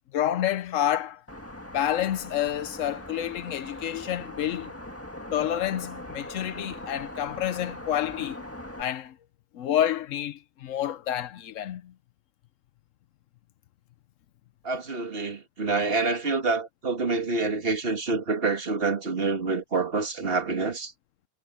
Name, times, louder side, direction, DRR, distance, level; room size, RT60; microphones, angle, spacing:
voice 1, 0.1-1.2 1.7-4.7 5.3-8.4 8.8-9.2 9.5-11.9, left 11 dB, 65° left, 0.9 m, -29 dB
sound 1, 1.3-8.8, left 1 dB, 10° left, 1.7 m, -41 dB
voice 2, 14.6-20.9, right 3 dB, 40° right, 2.0 m, -27 dB
omnidirectional pair, 1.7 m